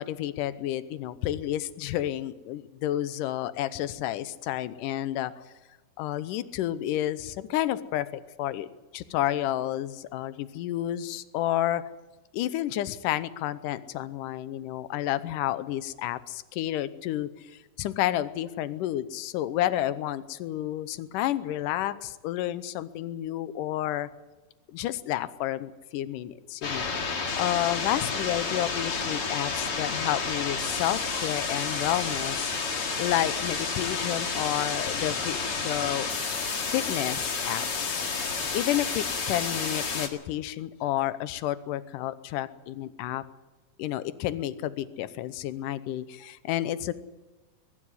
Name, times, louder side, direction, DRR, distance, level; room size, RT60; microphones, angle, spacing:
voice 1, 0.0-5.3 6.0-8.7 8.9-11.8 12.3-24.1 24.7-27.0 27.4-32.5 33.0-36.1 36.7-38.0 38.5-43.2 43.8-46.9, left 13 dB, 75° left, 14 dB, 2.3 m, -30 dB
sound 1, 26.6-40.1, left 4 dB, 45° left, 2.7 m, -30 dB
22.0 x 12.5 x 9.8 m, 1.2 s
omnidirectional pair, 4.1 m